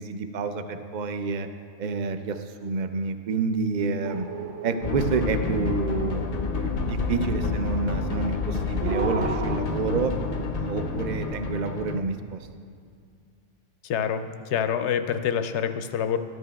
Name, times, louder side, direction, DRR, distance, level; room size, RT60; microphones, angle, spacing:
voice 1, 0.0-1.5 1.8-4.3 4.6-10.1 10.6-12.4, right 4 dB, 55° right, 7 dB, 0.5 m, -29 dB
sound 1, 4.0-6.6 8.8-9.6, right 6 dB, 80° right, 0.9 m, -34 dB
sound 2, 4.8-12.0, left 4 dB, 50° left, 0.5 m, -29 dB
voice 2, 13.8-16.2, left 8 dB, 70° left, 9 dB, 0.8 m, -26 dB
13.5 x 11.0 x 2.3 m, 2.1 s
omnidirectional pair, 1.2 m